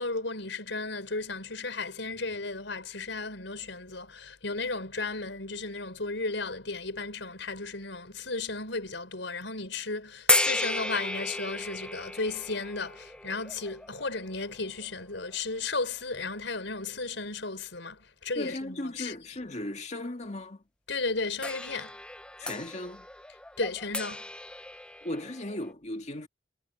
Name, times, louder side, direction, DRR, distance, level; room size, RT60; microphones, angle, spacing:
voice 1, 0.0-19.1 20.9-22.0 23.6-24.3, left 3 dB, 80° left, 5.0 m, -34 dB
sound 1, 10.3-15.3 16.2-16.3 21.4-25.7, left 2 dB, 5° left, 0.8 m, -33 dB
voice 2, 18.4-20.6 22.4-23.1 25.0-26.3, left 1 dB, 40° left, 2.0 m, -36 dB
head